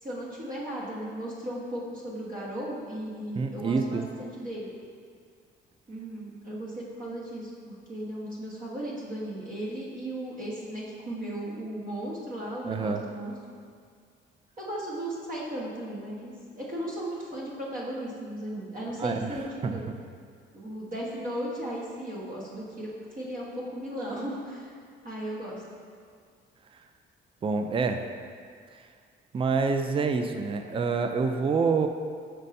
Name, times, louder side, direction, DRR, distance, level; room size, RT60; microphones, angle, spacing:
voice 1, 0.0-4.8 5.9-13.3 14.6-19.8 20.5-22.9 23.1-24.7 25.0-25.6, right 1 dB, 45° right, -5 dB, 1.3 m, -36 dB
voice 2, 3.4-4.1 12.7-13.0 19.0-19.2 19.6-19.8 27.4-28.0 29.3-31.9, right 4 dB, 25° right, 6 dB, 0.4 m, -27 dB
5.2 x 4.5 x 4.2 m, 2.1 s
cardioid pair, 90°, 20 cm